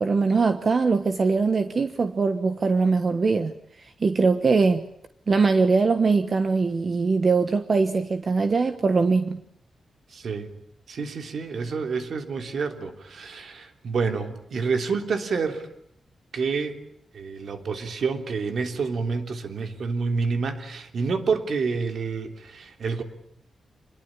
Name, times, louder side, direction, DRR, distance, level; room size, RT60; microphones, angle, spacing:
voice 1, 0.0-4.8 5.3-9.4, right 4 dB, 40° right, 9 dB, 1.3 m, -22 dB
voice 2, 10.1-10.5 10.9-15.7 16.3-16.8 17.1-23.0, right 4 dB, 60° right, 6 dB, 3.3 m, -28 dB
26.5 x 22.0 x 9.9 m, 0.71 s
wide cardioid pair, 145°, 0 cm